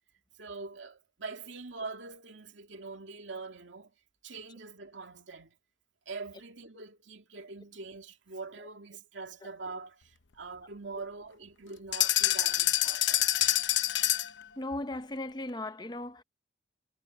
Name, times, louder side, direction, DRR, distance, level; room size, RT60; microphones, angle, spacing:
voice 1, 0.4-3.9 4.2-5.6 6.1-13.5, right 3 dB, 85° right, 2.4 m, -44 dB
sound 1, 11.9-14.4, left 13 dB, 75° left, 0.8 m, -26 dB
voice 2, 14.6-16.2, left 2 dB, 25° left, 0.8 m, -37 dB
head